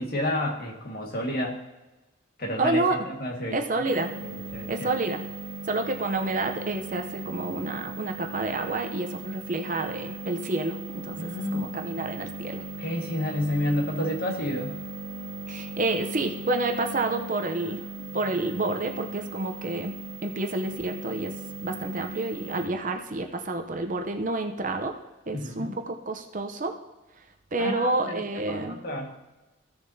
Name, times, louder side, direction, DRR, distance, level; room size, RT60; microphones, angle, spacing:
voice 1, 0.0-1.6 2.4-3.6 4.2-4.9 11.2-12.0 12.8-14.8 25.3-25.8 27.6-29.1, left 1 dB, 50° left, 1 dB, 1.7 m, -30 dB
voice 2, 2.6-3.0 3.5-4.1 4.7-5.2 5.6-12.6 15.5-17.8 18.1-19.9 20.2-21.4 21.6-24.9 25.3-26.7 27.5-28.8, right 2 dB, 40° right, 5 dB, 0.7 m, -29 dB
sound 1, 3.9-22.7, right 2 dB, 75° right, 1.1 m, -38 dB
15.5 x 6.9 x 2.8 m, 1.1 s
head